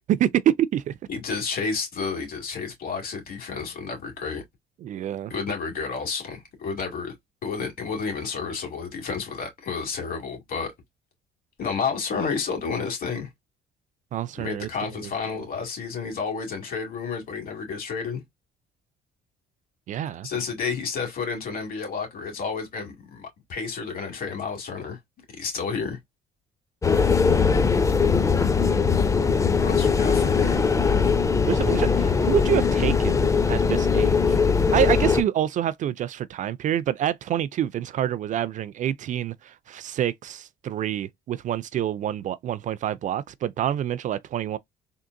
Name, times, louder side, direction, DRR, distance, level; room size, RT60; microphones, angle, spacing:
voice 1, 0.1-1.0 4.8-5.3 14.1-14.9 19.9-20.3 28.6-28.9 30.5-30.6 31.5-33.2 33.5-34.4 34.7-44.6, right 11 dB, 50° right, 0.4 m, -27 dB
voice 2, 1.1-4.4 5.3-7.1 7.4-10.7 11.6-13.3 14.4-18.2 20.2-25.0 25.3-26.0 29.6-30.6, left 5 dB, 60° left, 2.2 m, -31 dB
sound 1, 26.8-35.2, left 5 dB, 20° left, 0.5 m, -20 dB
3.7 x 2.5 x 2.5 m
cardioid pair, 110°, 17 cm